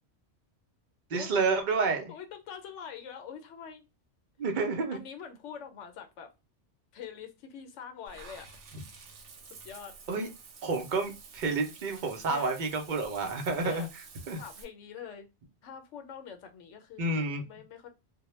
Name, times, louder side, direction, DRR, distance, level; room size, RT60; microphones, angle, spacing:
voice 1, 1.1-2.0 4.4-5.0 10.1-10.3 10.6-13.9 14.3-14.4 17.0-17.4, right 3 dB, 55° right, 0.6 m, -29 dB
voice 2, 2.1-3.9 4.9-6.3 6.9-8.5 9.6-9.9 12.2-12.5 13.6-13.9 14.4-15.3 15.6-17.9, left 7 dB, 85° left, 0.9 m, -44 dB
Water / Bathtub (filling or washing), 8.1-14.6, right 5 dB, 90° right, 0.9 m, -50 dB
2.2 x 2.1 x 3.0 m
omnidirectional pair, 1.2 m